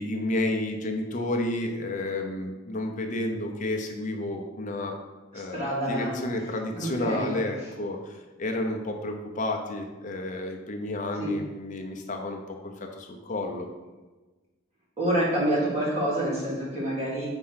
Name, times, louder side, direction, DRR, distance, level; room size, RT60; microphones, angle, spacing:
voice 1, 0.0-5.0 5.3-13.7, left 1 dB, 40° left, 3 dB, 0.8 m, -31 dB
voice 2, 5.5-6.2 6.8-7.4 11.2-11.3 15.0-17.3, right 1 dB, 30° right, -6 dB, 2.1 m, -27 dB
4.5 x 4.4 x 5.7 m, 1.2 s
head